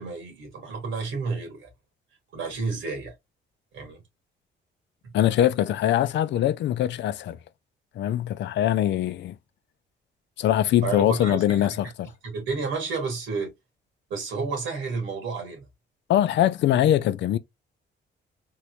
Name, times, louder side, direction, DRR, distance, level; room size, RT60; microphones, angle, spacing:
voice 1, 0.0-1.7 2.3-3.1 3.7-4.0 10.8-11.7 12.2-13.5 14.1-15.7, right 4 dB, 90° right, 1.9 m, -31 dB
voice 2, 5.1-7.4 8.0-9.3 10.4-12.1 16.1-17.4, left 12 dB, 65° left, 0.4 m, -22 dB
3.8 x 2.1 x 2.9 m
cardioid pair, 90°, 20 cm